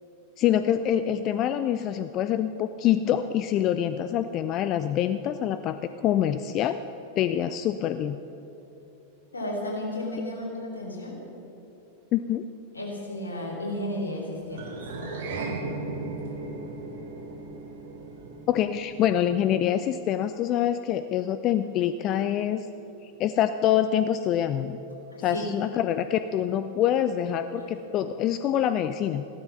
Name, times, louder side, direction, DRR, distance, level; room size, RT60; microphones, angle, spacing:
voice 1, 0.4-6.8 7.2-8.2 12.1-12.5 18.5-22.7 23.2-24.8 25.2-29.2, left 10 dB, 35° left, 11 dB, 0.4 m, -25 dB
voice 2, 9.3-11.2 12.7-14.8 25.1-25.5 27.5-27.8, left 1 dB, 80° left, -2 dB, 3.7 m, -33 dB
sound 1, 14.5-19.1, right 3 dB, 55° right, 2.2 m, -36 dB
15.5 x 13.0 x 6.1 m, 3.0 s
figure-of-eight pair, 90°, 0 cm